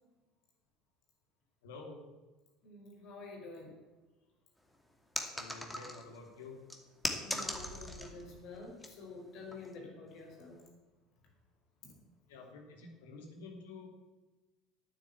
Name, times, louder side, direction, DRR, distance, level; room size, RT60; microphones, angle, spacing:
voice 1, 1.6-2.1 5.3-6.6 12.3-13.9, left 3 dB, 70° left, 3 dB, 2.9 m, -49 dB
voice 2, 2.6-3.8 7.2-10.5 11.8-11.9, left 3 dB, 55° left, 0 dB, 5.0 m, -49 dB
sound 1, 5.2-6.2 6.7-8.2 8.5-8.9 9.5-9.7, left 1 dB, 5° left, 2.4 m, -39 dB
sound 2, 7.3-9.0, right 2 dB, 70° right, 1.6 m, -53 dB
11.0 x 9.1 x 8.3 m, 1.2 s
figure-of-eight pair, 70°, 0 cm